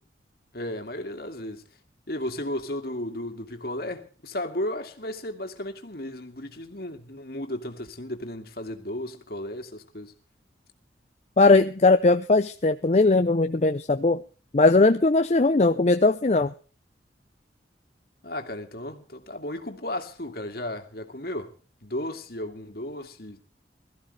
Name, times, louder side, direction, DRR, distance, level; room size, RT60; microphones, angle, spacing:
voice 1, 0.5-1.6 2.1-10.1 18.2-21.5 21.8-23.4, left 1 dB, 60° left, 2.3 m, -34 dB
voice 2, 11.4-14.2 14.5-16.5, left 3 dB, 40° left, 0.6 m, -19 dB
21.5 x 14.0 x 3.3 m
head